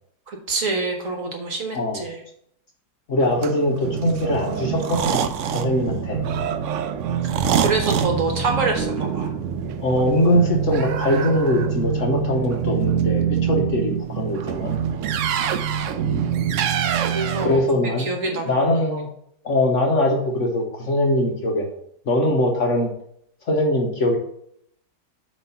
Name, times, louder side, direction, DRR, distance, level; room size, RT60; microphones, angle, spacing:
voice 1, 0.3-2.2 7.6-9.3 17.1-17.6 18.0-19.0, right 3 dB, 55° right, 3 dB, 1.3 m, -26 dB
voice 2, 3.1-5.2 5.5-6.2 9.8-14.7 17.4-19.1 19.4-21.7 22.1-22.9 23.5-24.2, left 1 dB, 50° left, 1 dB, 1.1 m, -22 dB
sound 1, 3.2-17.6, right 8 dB, 85° right, 0.6 m, -25 dB
7.7 x 3.2 x 5.6 m, 0.70 s
omnidirectional pair, 1.9 m